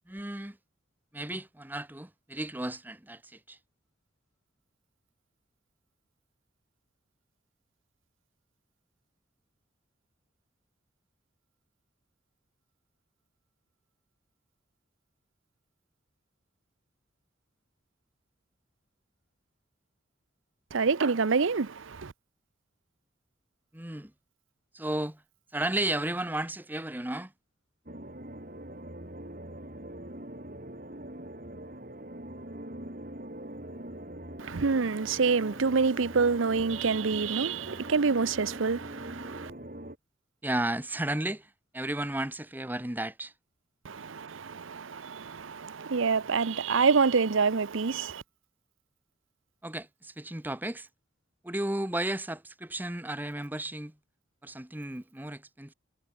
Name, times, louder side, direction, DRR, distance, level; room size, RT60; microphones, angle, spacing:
voice 1, 0.1-0.6 1.1-3.6 23.7-24.1 24.7-25.2 25.5-27.3 40.4-43.3 49.6-50.9 51.4-53.9 54.4-55.7, right 1 dB, 10° right, 0.9 m, -33 dB
voice 2, 20.7-22.1 34.4-39.5 43.8-48.2, right 5 dB, 80° right, 0.7 m, -27 dB
sound 1, 27.9-40.0, right 1 dB, 45° right, 3.2 m, -43 dB
head